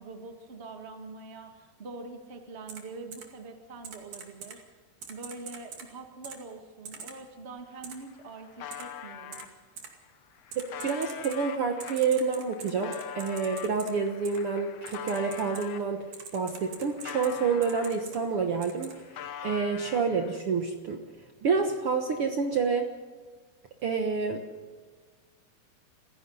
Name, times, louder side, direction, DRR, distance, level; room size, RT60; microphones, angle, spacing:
voice 1, 0.0-4.6 5.1-9.4, right 3 dB, 40° right, 5 dB, 0.9 m, -44 dB
Typing, 2.7-2.8 3.1-3.2 3.8-4.6 5.0-5.9 6.2-6.4 6.9-7.1 7.8-7.9 8.7-8.8 9.3-9.4 9.8-9.9 10.5-11.4 11.8-13.9 14.3-14.4 14.9-15.7 16.1-17.4 17.6-18.2 18.6-18.9, right 6 dB, 55° right, 3.7 m, -43 dB
sound 1, 7.6-7.7 7.9-9.5 10.1-15.9 16.4-18.3 18.6-20.4, left 8 dB, 80° left, 1.4 m, -43 dB
voice 2, 10.5-16.0 16.3-18.9 19.4-21.0 21.4-22.9 23.8-24.4, right 5 dB, 90° right, 4 dB, 1.2 m, -28 dB
29.0 x 16.0 x 5.6 m, 1.5 s
omnidirectional pair, 4.6 m